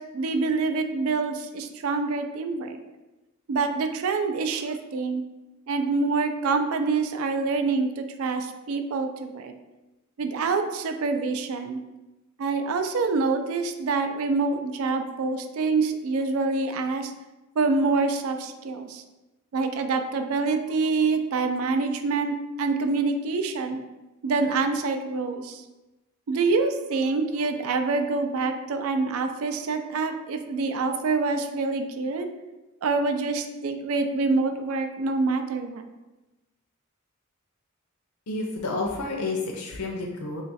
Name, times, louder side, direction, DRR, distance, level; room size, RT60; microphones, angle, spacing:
voice 1, 0.0-2.8 3.5-5.2 5.7-9.5 10.2-11.8 12.4-17.1 17.6-19.0 19.5-23.8 24.2-25.6 26.3-32.3 32.8-35.9, right 4 dB, 70° right, 7 dB, 0.4 m, -26 dB
voice 2, 38.3-40.4, left 3 dB, 80° left, 0 dB, 0.5 m, -30 dB
3.0 x 2.4 x 4.0 m, 1.1 s
head